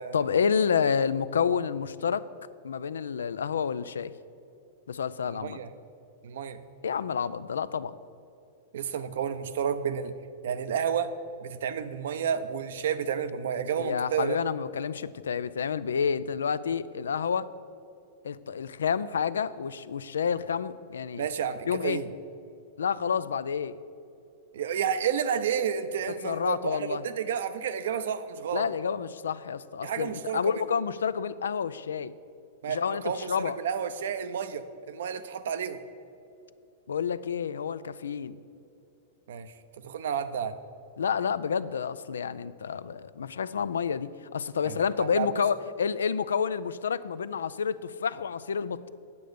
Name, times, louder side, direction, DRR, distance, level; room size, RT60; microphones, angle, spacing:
voice 1, 0.1-2.3 2.6-4.1 4.9-5.6 6.8-7.9 13.8-17.5 18.2-21.2 21.7-22.0 22.8-23.8 26.2-27.0 28.5-32.1 32.7-33.6 36.9-38.4 41.0-48.9, left 6 dB, 90° left, 16 dB, 0.3 m, -29 dB
voice 2, 5.3-5.7 6.2-6.6 8.7-10.1 10.4-11.1 11.4-14.4 21.2-22.1 24.5-28.7 29.8-30.4 32.6-35.8 39.3-39.5 39.8-40.6 44.6-45.4, right 8 dB, 75° right, 11 dB, 0.6 m, -31 dB
8.3 x 7.9 x 5.0 m, 2.7 s
hypercardioid pair, 120°, 0 cm